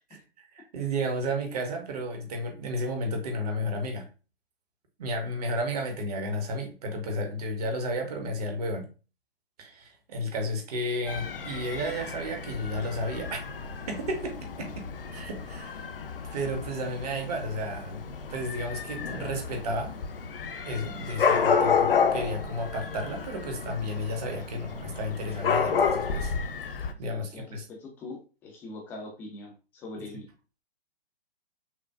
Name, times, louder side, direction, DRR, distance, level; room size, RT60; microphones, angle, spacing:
voice 1, 0.4-4.0 5.0-8.9 9.6-13.4 13.9-14.8 15.1-15.9 16.3-20.0 20.7-26.3 27.0-27.7, equal, 40° right, 3 dB, 1.0 m, -32 dB
Dog / Cat, 11.1-26.9, left 6 dB, 65° left, 0.6 m, -30 dB
voice 2, 26.9-30.2, left 2 dB, 5° left, 1 dB, 0.4 m, -43 dB
5.8 x 2.1 x 2.3 m, 0.34 s
figure-of-eight pair, 120°, 31 cm